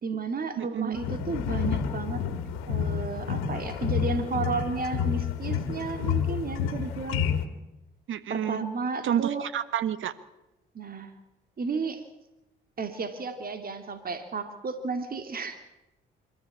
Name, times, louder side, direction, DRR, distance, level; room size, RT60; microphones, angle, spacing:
voice 1, 0.0-2.2 2.7-7.2 8.3-9.4 10.7-11.1 11.6-12.0 12.8-15.6, right 4 dB, 45° right, 8 dB, 2.5 m, -33 dB
voice 2, 0.6-1.0 8.1-8.7 9.0-10.1, right 10 dB, 70° right, 15 dB, 1.4 m, -29 dB
sound 1, 0.9-7.5, left 8 dB, 90° left, 2.0 m, -29 dB
25.0 x 14.0 x 8.4 m, 0.97 s
supercardioid pair, 65°, 21 cm